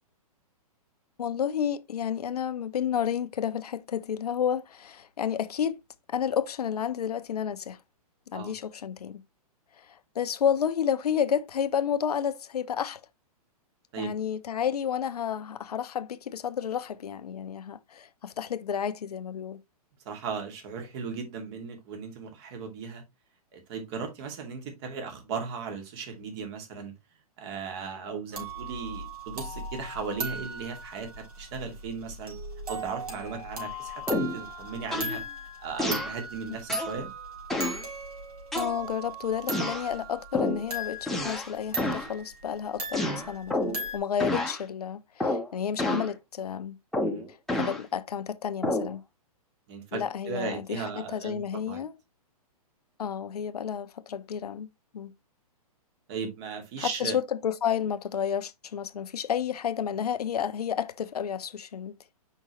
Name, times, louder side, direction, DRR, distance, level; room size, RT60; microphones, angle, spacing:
voice 1, 1.2-5.8 6.1-7.8 8.3-9.2 9.7-13.0 14.0-19.6 38.5-46.8 47.3-49.0 49.9-51.9 53.0-54.7 54.9-55.1 56.8-61.9, left 8 dB, 80° left, 0.8 m, -31 dB
voice 2, 20.1-23.0 23.5-26.9 27.4-32.4 32.7-35.2 35.6-37.1 47.0-47.2 49.7-51.4 51.7-51.8 56.1-57.2, right 5 dB, 45° right, 2.4 m, -36 dB
sound 1, 28.3-44.0, right 2 dB, 80° right, 4.1 m, -38 dB
sound 2, 34.1-34.4 34.9-35.2 35.8-36.2 36.7-37.0 37.5-37.8 38.5-39.1 39.5-39.9 40.3-40.6 41.1-41.5 41.8-42.1 42.9-43.9 44.2-44.6 45.2-45.5 45.8-46.1 46.9-47.8 48.6-48.9, left 1 dB, ahead, 1.0 m, -29 dB
5.9 x 5.4 x 3.1 m
hypercardioid pair, 135°, 19 cm